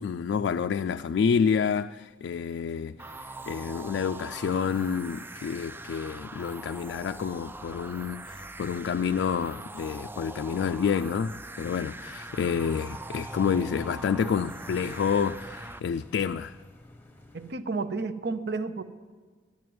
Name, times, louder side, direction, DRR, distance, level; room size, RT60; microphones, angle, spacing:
voice 1, 0.0-3.1 3.5-16.6, left 6 dB, 75° left, 0.3 m, -28 dB
sound 1, 0.8-17.6, left 1 dB, 10° left, 1.1 m, -52 dB
sound 2, 3.0-15.8, right 2 dB, 10° right, 0.3 m, -42 dB
voice 2, 17.3-18.8, right 3 dB, 65° right, 0.7 m, -31 dB
11.0 x 9.2 x 9.4 m
head